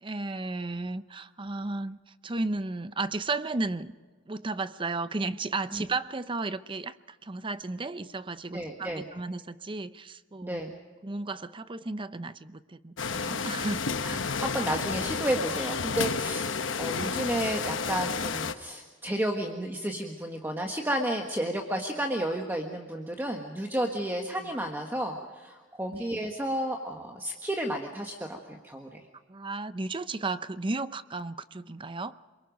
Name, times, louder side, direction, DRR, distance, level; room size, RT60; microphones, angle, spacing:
voice 1, 0.0-2.0 2.2-3.9 4.3-10.6 11.0-14.3 17.0-17.1 24.4-24.5 25.9-26.0 29.3-32.2, right 3 dB, 25° right, 13 dB, 0.7 m, -34 dB
voice 2, 8.5-9.0 10.4-10.7 14.0-29.0, right 1 dB, 10° right, 2 dB, 1.5 m, -32 dB
sound 1, 13.0-18.5, left 5 dB, 80° left, 1.0 m, -31 dB
29.0 x 22.5 x 5.3 m, 1.4 s
head